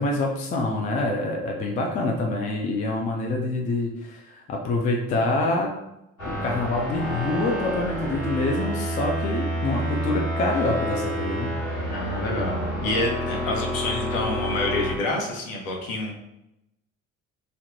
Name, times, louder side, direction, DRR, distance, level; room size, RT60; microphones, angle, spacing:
voice 1, 0.0-5.7 6.2-11.6, left 2 dB, 20° left, 1 dB, 0.3 m, -26 dB
sound 1, 6.2-14.9, equal, 85° left, 1.4 m, -29 dB
voice 2, 11.9-16.2, left 2 dB, 55° left, 0 dB, 0.7 m, -28 dB
2.6 x 2.1 x 2.7 m, 0.87 s
figure-of-eight pair, 50°, 42 cm